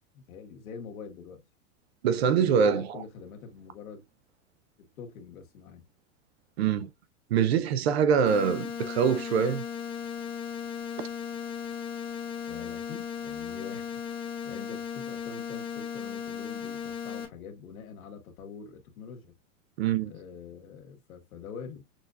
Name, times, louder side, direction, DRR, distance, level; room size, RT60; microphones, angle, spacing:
voice 1, 0.1-1.4 2.3-4.0 4.8-5.9 12.4-14.0 14.4-19.3 20.0-21.8, left 6 dB, 75° left, 1.7 m, -45 dB
voice 2, 2.0-3.0 6.6-6.9 7.3-9.6 19.8-20.1, right 7 dB, 50° right, 0.5 m, -24 dB
sound 1, 8.2-17.2, left 7 dB, 10° left, 0.7 m, -36 dB
6.3 x 2.6 x 2.3 m
supercardioid pair, 175°, 43 cm